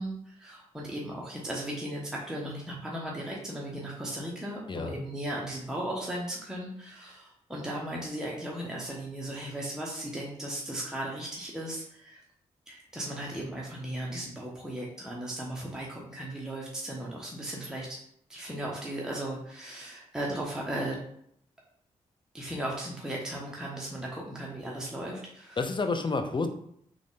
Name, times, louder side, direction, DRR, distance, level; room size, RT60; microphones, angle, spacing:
voice 1, 0.0-12.2 12.7-18.0 18.3-21.0 22.3-25.6, right 1 dB, 5° right, -3 dB, 0.9 m, -36 dB
voice 2, 4.7-5.1 25.6-26.5, left 3 dB, 35° left, 6 dB, 0.6 m, -29 dB
3.7 x 2.4 x 3.7 m, 0.69 s
supercardioid pair, 45°, 14 cm